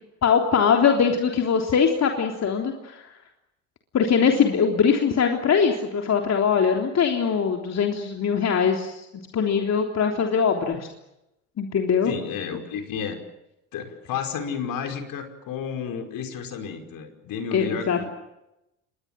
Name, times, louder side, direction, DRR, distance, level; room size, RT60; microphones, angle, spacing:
voice 1, 0.2-3.0 3.9-9.1 9.3-10.9 11.6-12.1 17.5-18.0, left 6 dB, 45° left, 3 dB, 3.5 m, -22 dB
voice 2, 12.0-13.2 13.7-18.1, left 7 dB, 60° left, 6 dB, 5.3 m, -32 dB
28.0 x 22.0 x 7.6 m, 0.88 s
hypercardioid pair, 70°, 38 cm